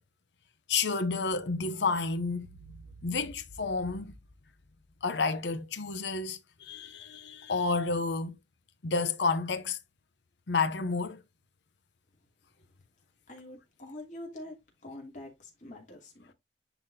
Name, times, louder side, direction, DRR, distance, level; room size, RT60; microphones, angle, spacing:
voice 1, 0.7-2.5 3.0-4.1 5.0-8.4 8.8-9.8 10.5-11.2, left 4 dB, 75° left, 0.7 m, -30 dB
voice 2, 13.3-14.6 14.8-16.3, left 1 dB, 45° left, 2.8 m, -45 dB
10.0 x 4.0 x 2.7 m
head